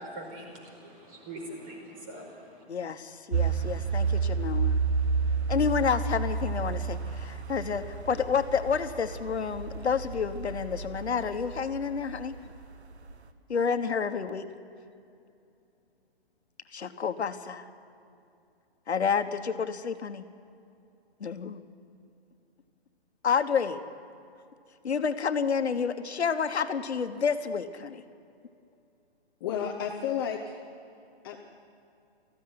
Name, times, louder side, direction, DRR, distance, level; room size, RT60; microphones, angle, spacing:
voice 1, 0.0-2.6, right 1 dB, 35° right, 2 dB, 5.1 m, -43 dB
voice 2, 2.7-4.8 5.5-12.4 13.5-14.5 16.7-17.7 18.9-20.2 21.2-21.6 23.2-23.8 24.8-28.0, left 6 dB, 85° left, 9 dB, 1.3 m, -29 dB
sound 1, 3.3-12.6 13.1-13.2, right 5 dB, 85° right, 1.4 m, -31 dB
voice 3, 29.4-30.6 31.2-31.4, left 8 dB, 20° left, 1 dB, 0.8 m, -32 dB
19.0 x 15.0 x 9.6 m, 2.6 s
hypercardioid pair, 160°, 32 cm